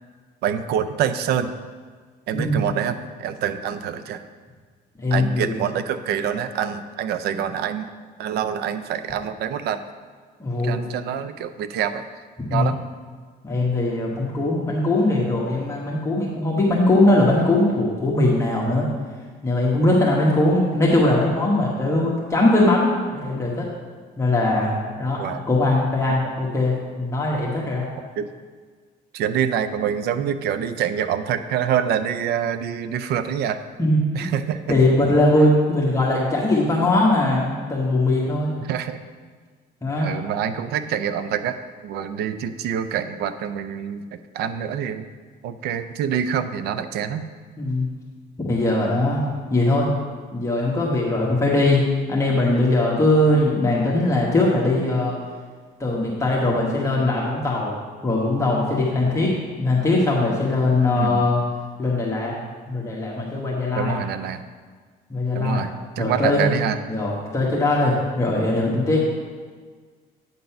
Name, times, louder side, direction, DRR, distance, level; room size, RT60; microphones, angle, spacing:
voice 1, 0.4-1.5 2.3-4.2 5.1-7.9 8.2-9.8 10.6-12.1 12.5-12.8 25.2-25.4 28.2-28.3 29.1-33.6 34.1-34.8 38.6-39.0 40.0-41.6 41.8-45.0 45.4-47.3 49.8-49.9 60.9-61.3 63.8-64.4 65.3-66.8, right 8 dB, 75° right, 11 dB, 0.5 m, -26 dB
voice 2, 2.3-2.6 5.0-5.5 10.4-10.7 12.4-12.6 13.4-18.9 19.4-23.7 24.2-27.9 33.8-34.3 34.7-38.6 39.8-40.1 47.6-47.9 48.4-49.9 50.3-51.8 52.1-55.1 55.8-57.7 58.0-59.3 59.6-61.4 61.8-62.3 62.7-64.0 65.1-65.6 66.0-66.5 66.9-69.0, left 2 dB, 15° left, -5 dB, 1.2 m, -20 dB
8.8 x 4.0 x 5.7 m, 1.5 s
cardioid pair, 110°, 17 cm